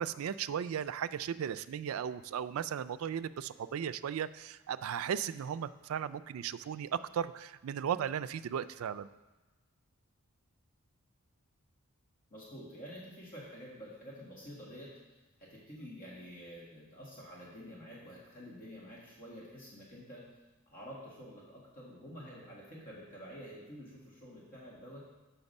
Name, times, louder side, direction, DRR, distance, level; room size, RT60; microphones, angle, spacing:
voice 1, 0.0-9.1, right 8 dB, 75° right, 13 dB, 0.3 m, -36 dB
voice 2, 12.3-20.2 20.7-25.0, equal, 40° left, -5 dB, 1.7 m, -49 dB
7.1 x 5.8 x 5.3 m, 1.2 s
head